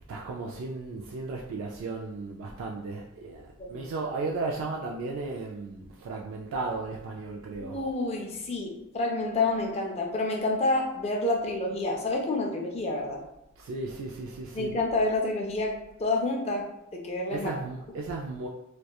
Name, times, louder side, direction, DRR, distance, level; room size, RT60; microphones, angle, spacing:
voice 1, 0.1-7.8 13.6-14.7 17.3-18.5, right 3 dB, 85° right, -1 dB, 0.3 m, -35 dB
voice 2, 3.6-3.9 7.6-13.2 14.5-16.7 16.9-17.5, left 2 dB, 30° left, 0 dB, 0.4 m, -28 dB
2.8 x 2.2 x 2.3 m, 0.84 s
head